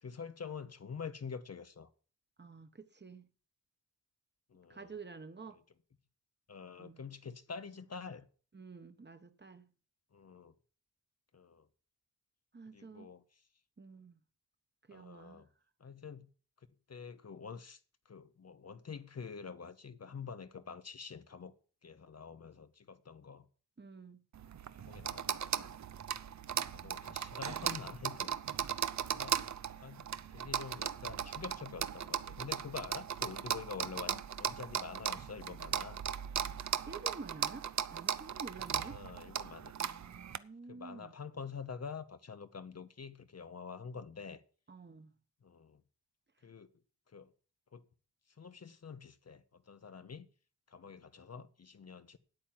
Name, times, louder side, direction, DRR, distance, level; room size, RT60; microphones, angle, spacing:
voice 1, 0.0-1.9 4.5-4.9 5.5-5.6 6.5-8.3 10.1-10.5 11.3-11.7 12.7-13.4 14.9-15.5 15.8-16.3 16.9-17.8 18.1-21.5 21.8-23.5 24.7-25.8 26.6-28.4 29.1-29.4 29.8-36.0 38.8-39.7 40.7-44.4 45.4-45.8 46.4-46.7 47.1-47.3 47.7-47.9 48.4-50.3 50.7-52.2, left 6 dB, 40° left, 0.8 m, -47 dB
voice 2, 2.4-3.3 4.7-5.6 6.8-7.0 8.5-9.7 12.5-13.1 13.8-14.2 14.9-15.5 23.8-24.2 36.9-39.0 39.8-41.1 44.7-45.1, right 4 dB, 25° right, 1.2 m, -50 dB
sound 1, 24.3-40.4, right 9 dB, 45° right, 0.6 m, -38 dB
9.1 x 8.7 x 7.5 m
wide cardioid pair, 120°, 40 cm